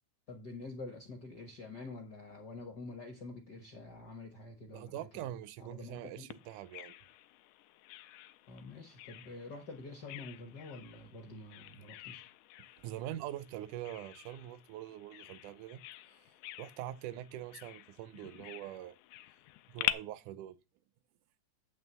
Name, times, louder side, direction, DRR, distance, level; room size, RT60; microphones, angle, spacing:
voice 1, 0.3-5.3 5.6-6.3 8.5-12.2, left 3 dB, 60° left, 1.1 m, -47 dB
voice 2, 4.7-6.9 12.8-15.8 16.1-16.2 16.6-19.0 19.7-20.6, right 12 dB, 85° right, 2.1 m, -43 dB
Bird vocalization bird call bird song, 6.3-19.9, left 16 dB, 85° left, 2.0 m, -45 dB
9.1 x 3.4 x 6.7 m
omnidirectional pair, 3.4 m